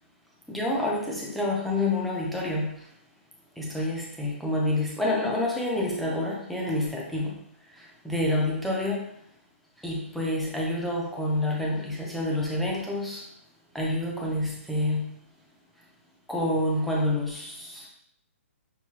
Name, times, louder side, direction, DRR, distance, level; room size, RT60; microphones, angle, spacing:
voice 1, 0.5-2.9 3.6-7.4 7.8-9.1 9.8-13.2 13.7-15.2 16.3-17.9, left 1 dB, ahead, -3 dB, 0.5 m, -28 dB
6.2 x 2.2 x 2.8 m, 0.69 s
hypercardioid pair, 170°, 7 cm